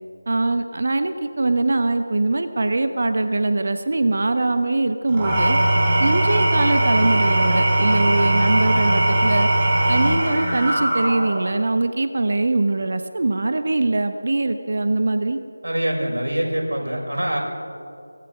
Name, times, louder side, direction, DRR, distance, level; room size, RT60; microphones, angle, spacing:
voice 1, 0.3-5.6 6.0-9.5 9.9-15.4, right 2 dB, 45° right, 8 dB, 1.2 m, -22 dB
Engine / Tools, 5.1-11.5, right 1 dB, 15° right, 5.3 m, -19 dB
voice 2, 15.6-17.4, right 1 dB, 75° right, 0 dB, 6.7 m, -24 dB
24.0 x 19.0 x 6.2 m, 2.5 s
figure-of-eight pair, 165°, 0 cm